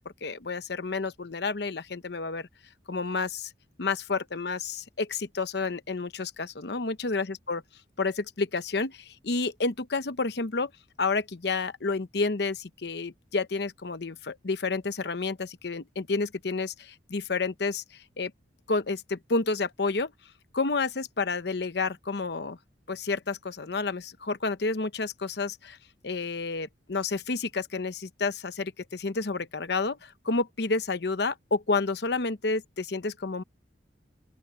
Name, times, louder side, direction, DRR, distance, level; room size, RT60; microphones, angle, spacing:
voice 1, 0.0-2.5 2.9-3.5 3.8-7.6 8.0-10.7 11.0-18.3 18.7-20.1 20.5-22.6 22.9-25.8 26.0-33.4, left 3 dB, 60° left, 0.9 m, -30 dB
open air
head